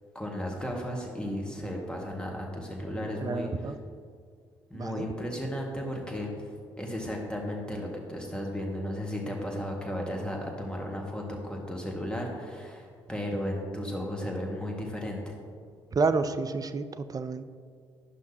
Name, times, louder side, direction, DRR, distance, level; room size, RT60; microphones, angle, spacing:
voice 1, 0.1-3.7 4.7-6.3 6.8-15.3, equal, 5° left, -1 dB, 1.9 m, -34 dB
voice 2, 3.2-3.8 4.7-5.1 15.9-17.4, right 4 dB, 30° right, 10 dB, 0.5 m, -29 dB
11.5 x 5.7 x 2.9 m, 2.1 s
hypercardioid pair, 45°, 12 cm